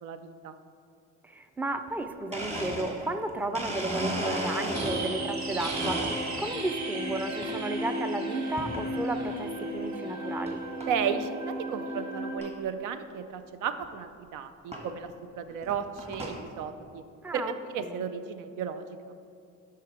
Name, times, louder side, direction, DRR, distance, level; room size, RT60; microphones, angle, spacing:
voice 1, 0.0-0.5 10.9-17.0 17.3-19.1, right 7 dB, 90° right, 10 dB, 0.5 m, -34 dB
voice 2, 1.2-6.1 6.4-10.6 17.2-18.1, right 2 dB, 5° right, 8 dB, 0.4 m, -33 dB
Domestic sounds home sounds, 2.0-2.1 2.3-5.3 5.6-6.6 7.1-7.6 8.6-8.9 9.5-9.6 10.5-10.6 10.8-11.1 11.6-11.7 11.9-12.0 12.4-12.5 13.8-13.9 14.7-14.9 15.5-16.4, right 1 dB, 20° right, 1.4 m, -35 dB
sound 1, 4.7-12.4, right 1 dB, 65° right, 1.1 m, -34 dB
7.7 x 5.7 x 4.7 m, 2.6 s
cardioid pair, 90°, 30 cm